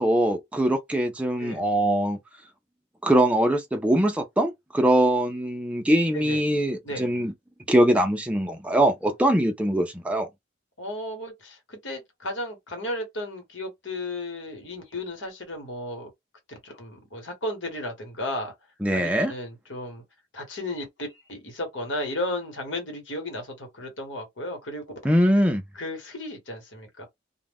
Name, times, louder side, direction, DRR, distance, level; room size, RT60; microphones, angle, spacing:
voice 1, 0.0-2.2 3.0-7.3 7.7-10.3 18.8-19.3 25.0-25.6, right 1 dB, 5° right, 0.4 m, -22 dB
voice 2, 10.8-16.1 16.5-18.5 18.9-20.0 20.3-25.0 25.7-27.1, left 1 dB, 75° left, 1.2 m, -34 dB
2.4 x 2.1 x 3.4 m
head